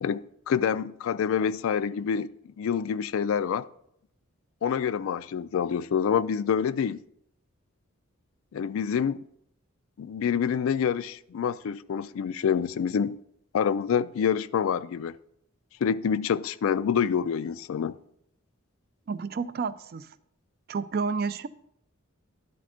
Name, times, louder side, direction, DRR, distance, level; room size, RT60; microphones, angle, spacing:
voice 1, 0.0-2.3 2.6-3.7 4.6-7.0 8.5-9.2 10.0-13.2 13.5-15.2 15.8-17.9, left 7 dB, 70° left, 0.3 m, -27 dB
voice 2, 19.1-20.1 20.7-21.5, right 5 dB, 45° right, 0.3 m, -30 dB
11.5 x 4.2 x 4.9 m
head